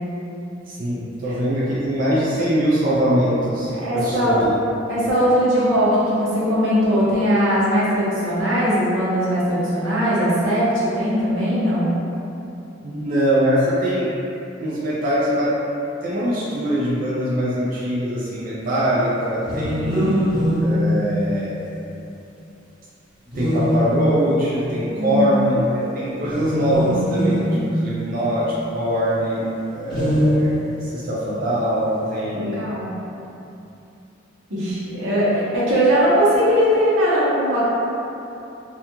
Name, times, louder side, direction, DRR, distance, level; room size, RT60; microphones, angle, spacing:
voice 1, 0.7-4.5 12.8-14.1 14.6-15.6 16.0-20.3 20.6-21.5 23.4-30.5 30.8-32.8 35.2-35.5, equal, 45° right, -9 dB, 0.4 m, -22 dB
voice 2, 3.7-4.4 4.9-11.9 24.9-25.3 32.3-32.9 34.5-37.7, equal, 85° right, -9 dB, 0.8 m, -20 dB
sound 1, 19.4-21.7 23.3-24.5 26.2-28.5 29.8-30.9, equal, 25° right, 1.0 m, -22 dB
2.3 x 2.2 x 2.9 m, 2.8 s
head